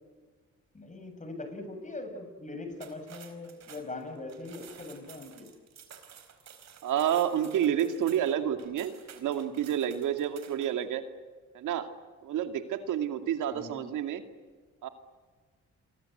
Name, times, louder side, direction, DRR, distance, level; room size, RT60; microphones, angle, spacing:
voice 1, 0.7-5.5 13.5-13.8, left 2 dB, 25° left, 6 dB, 7.3 m, -41 dB
sound 1, 2.7-10.8, right 7 dB, 60° right, 4.4 m, -52 dB
voice 2, 6.8-11.0 11.5-11.9 12.2-14.2 14.8-14.9, right 10 dB, 80° right, 8 dB, 2.4 m, -29 dB
29.0 x 23.5 x 8.0 m, 1.4 s
cardioid pair, 90°, 30 cm